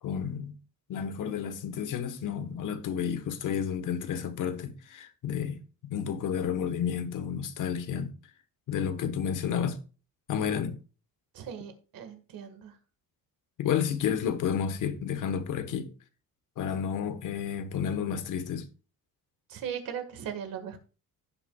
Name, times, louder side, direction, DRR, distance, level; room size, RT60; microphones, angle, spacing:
voice 1, 0.0-0.6 0.9-8.1 8.7-9.8 10.3-10.8 13.6-15.9 16.6-18.7, left 8 dB, 55° left, 1.3 m, -31 dB
voice 2, 11.3-12.7 19.5-20.8, right 8 dB, 65° right, 1.8 m, -38 dB
16.5 x 5.7 x 2.4 m
cardioid pair, 160°, 37 cm